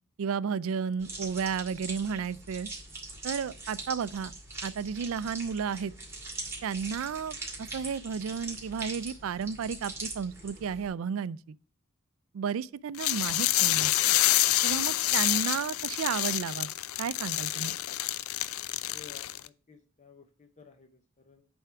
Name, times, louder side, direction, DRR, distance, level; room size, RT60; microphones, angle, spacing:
voice 1, 0.2-2.7 3.2-4.3 4.6-5.9 6.6-11.6 12.3-13.9 14.6-16.7 17.0-17.8, right 6 dB, 70° right, 0.4 m, -33 dB
sound 1, 1.0-10.9, right 2 dB, 10° right, 2.3 m, -42 dB
sound 2, 13.0-19.5, left 14 dB, 80° left, 0.4 m, -27 dB
voice 2, 18.9-21.5, left 6 dB, 35° left, 0.7 m, -54 dB
8.1 x 3.5 x 5.6 m
head